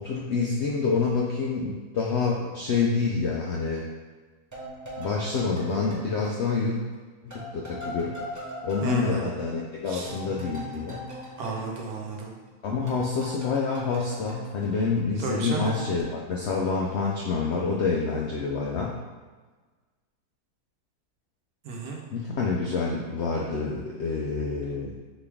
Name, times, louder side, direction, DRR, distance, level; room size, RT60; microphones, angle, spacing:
voice 1, 0.0-3.9 5.0-6.8 7.2-8.1 8.6-11.0 12.6-19.0 22.1-24.9, left 4 dB, 75° left, -2 dB, 0.6 m, -27 dB
sound 1, 4.5-7.0 7.3-12.5 12.9-15.3 15.6-16.0, equal, 20° right, 0.5 m, -41 dB
voice 2, 8.8-9.3 9.9-10.1 11.4-12.3 15.2-15.7 21.6-22.0, right 3 dB, 75° right, -1 dB, 1.2 m, -32 dB
4.1 x 3.2 x 3.4 m, 1.3 s
omnidirectional pair, 1.6 m